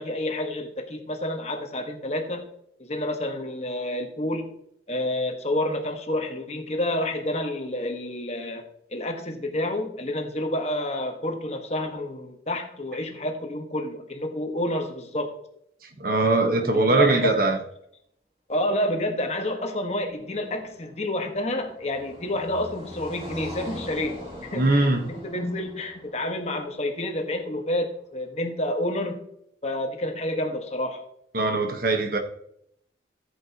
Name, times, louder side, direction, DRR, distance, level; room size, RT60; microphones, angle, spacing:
voice 1, 0.0-2.5 2.8-4.5 4.9-8.6 8.9-15.3 16.6-17.4 18.5-24.2 24.5-29.2 29.6-31.0, left 1 dB, 35° left, 1.4 m, -29 dB
voice 2, 16.0-17.6 24.5-25.1 31.3-32.2, right 2 dB, 50° right, 1.3 m, -21 dB
Car passing by, 20.3-27.6, equal, 35° right, 2.7 m, -42 dB
15.0 x 8.0 x 2.9 m
head